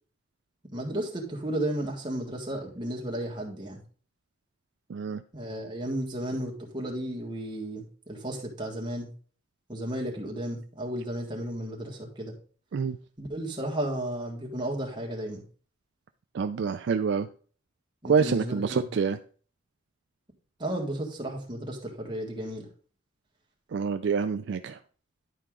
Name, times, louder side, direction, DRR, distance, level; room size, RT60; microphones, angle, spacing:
voice 1, 0.7-3.8 5.3-9.1 9.7-12.3 13.2-15.4 18.0-18.8 20.6-22.7, right 1 dB, 25° right, 0 dB, 1.6 m, -33 dB
voice 2, 4.9-5.2 12.7-13.0 16.3-17.3 18.1-19.2 23.7-24.8, right 5 dB, 55° right, 9 dB, 0.3 m, -27 dB
11.0 x 4.7 x 3.7 m, 0.42 s
head